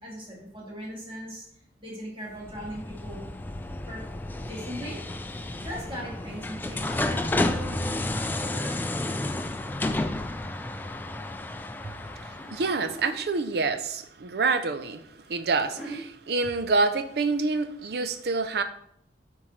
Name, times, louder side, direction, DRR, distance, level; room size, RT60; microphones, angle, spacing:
voice 1, 0.0-1.5 1.8-3.3 3.9-4.0 4.4-5.0 5.3-8.0, equal, 30° right, -5 dB, 2.2 m, -39 dB
sound 1, 2.2-2.4 5.3-5.8 6.0-7.3 7.9-8.8 9.8-10.6 11.0-11.4 12.4-12.5 12.8-13.3 14.8-16.0 16.9-17.1 17.3-17.4 18.0-18.1, right 2 dB, 5° right, 1.1 m, -46 dB
sound 2, 2.3-13.1, left 2 dB, 10° left, 0.3 m, -31 dB
voice 2, 12.2-15.0 15.3-18.6, right 3 dB, 60° right, 10 dB, 0.5 m, -27 dB
7.3 x 4.5 x 3.2 m, 0.71 s
head